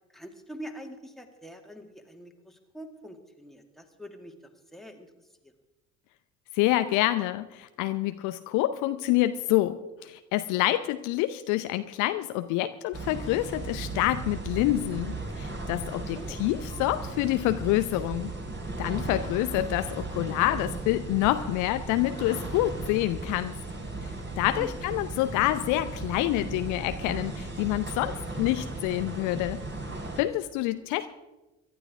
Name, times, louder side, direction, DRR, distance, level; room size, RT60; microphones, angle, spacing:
voice 1, 0.1-4.3 4.7-5.1 16.0-16.4 24.6-24.7, equal, ahead, 3 dB, 2.1 m, -44 dB
voice 2, 6.5-18.3 18.8-23.5 24.4-29.6 30.2-31.1, left 15 dB, 55° left, 11 dB, 0.6 m, -27 dB
sound 1, 12.9-30.2, right 2 dB, 30° right, 3.4 m, -36 dB
24.0 x 12.0 x 3.6 m, 1.1 s
figure-of-eight pair, 50°, 37 cm